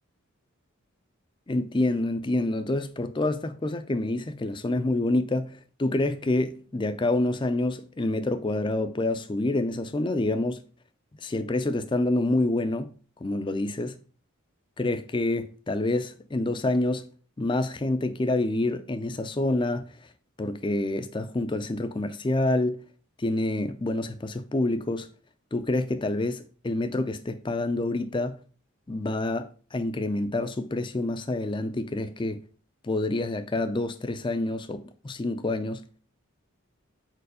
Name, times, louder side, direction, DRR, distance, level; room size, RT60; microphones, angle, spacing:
voice 1, 1.5-10.6 11.2-12.9 13.2-14.0 14.8-17.1 17.4-19.9 20.4-22.8 23.2-25.1 25.5-28.4 28.9-32.5 32.8-35.8, left 2 dB, 20° left, 0.4 m, -27 dB
4.7 x 4.5 x 4.9 m
head